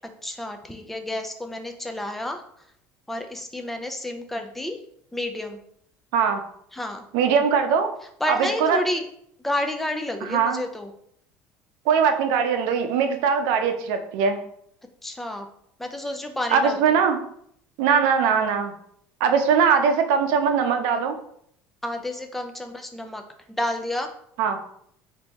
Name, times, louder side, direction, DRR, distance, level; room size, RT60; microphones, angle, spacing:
voice 1, 0.2-2.4 3.1-4.8 5.1-5.6 6.7-7.0 8.2-9.0 9.4-10.9 15.0-15.5 15.8-16.8 21.8-23.2 23.5-24.1, left 1 dB, 5° left, 5 dB, 0.4 m, -30 dB
voice 2, 7.1-7.9 8.3-8.8 10.2-10.6 11.9-14.4 16.5-17.2 17.8-18.7 19.2-21.2 24.4-24.6, right 6 dB, 80° right, 7 dB, 0.6 m, -21 dB
3.4 x 2.7 x 4.1 m, 0.68 s
cardioid pair, 150°, 6 cm